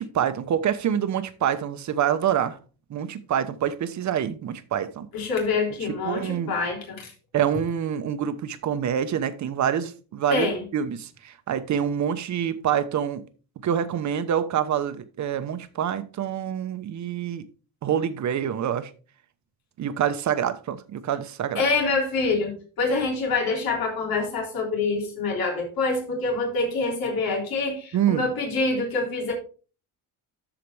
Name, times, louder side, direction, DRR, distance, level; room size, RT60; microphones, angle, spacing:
voice 1, 0.0-2.6 2.9-5.1 5.8-6.5 7.3-13.2 13.6-17.4 17.8-18.9 19.8-21.6 27.9-28.3, right 9 dB, 50° right, 1.0 m, -26 dB
voice 2, 5.1-7.1 10.3-10.6 21.6-29.3, left 3 dB, 80° left, 3.5 m, -26 dB
13.0 x 5.0 x 3.3 m
cardioid pair, 135°, 36 cm